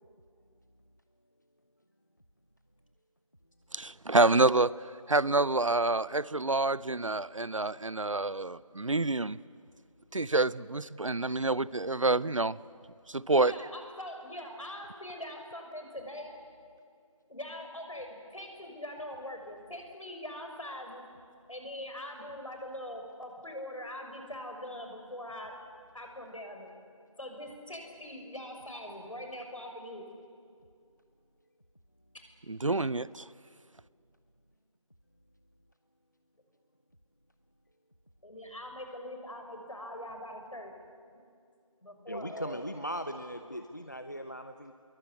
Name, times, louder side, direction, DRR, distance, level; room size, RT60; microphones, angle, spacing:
voice 1, 3.7-4.7 5.1-9.4 10.1-12.6 13.1-13.5 32.5-33.3, right 2 dB, 65° right, 0.7 m, -27 dB
voice 2, 13.4-16.4 17.3-21.0 21.5-25.5 25.9-26.8 27.2-30.1 38.2-40.7 41.8-42.6, left 1 dB, 70° left, 6.5 m, -42 dB
voice 3, 42.1-44.7, equal, 35° left, 0.7 m, -38 dB
27.5 x 22.5 x 8.5 m
figure-of-eight pair, 180°, 18 cm